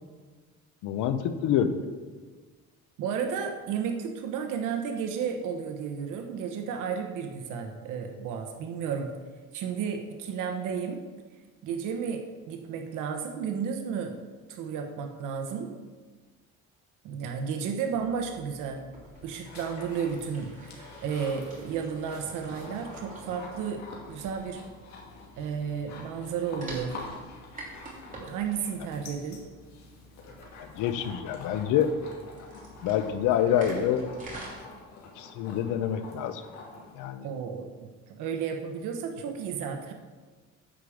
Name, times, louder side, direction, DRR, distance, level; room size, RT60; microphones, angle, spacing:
voice 1, 0.8-1.8 30.6-31.9 32.8-34.0 35.2-36.4 37.0-37.3, left 9 dB, 90° left, 10 dB, 0.9 m, -27 dB
voice 2, 3.0-9.1 9.5-11.0 11.6-14.2 14.5-15.7 17.0-18.8 19.2-24.6 25.4-27.0 28.3-29.4 37.2-39.9, right 6 dB, 90° right, 4 dB, 1.1 m, -33 dB
sound 1, 17.9-34.5, right 1 dB, 25° right, 2.8 m, -48 dB
sound 2, 18.9-37.0, left 3 dB, 65° left, 2.3 m, -47 dB
10.0 x 5.0 x 7.1 m, 1.4 s
cardioid pair, 140°, 30 cm